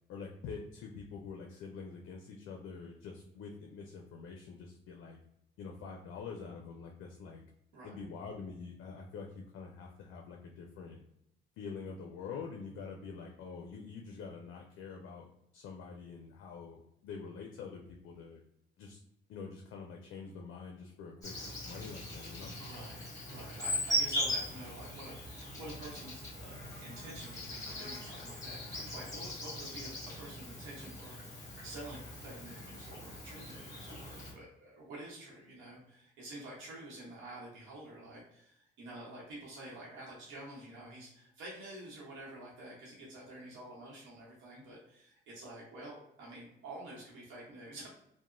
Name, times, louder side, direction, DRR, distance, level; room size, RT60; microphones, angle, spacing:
voice 1, 0.1-5.2 5.6-7.4 7.8-11.0 11.6-18.4 18.8-19.0 19.3-21.3 21.6-22.5, left 5 dB, 80° left, 1 dB, 0.4 m, -46 dB
Insect, 21.2-34.3, equal, 20° left, 1.5 m, -40 dB
voice 2, 22.6-47.9, right 1 dB, 85° right, -5 dB, 0.9 m, -49 dB
2.8 x 2.0 x 2.5 m, 0.80 s
cardioid pair, 90°, 20 cm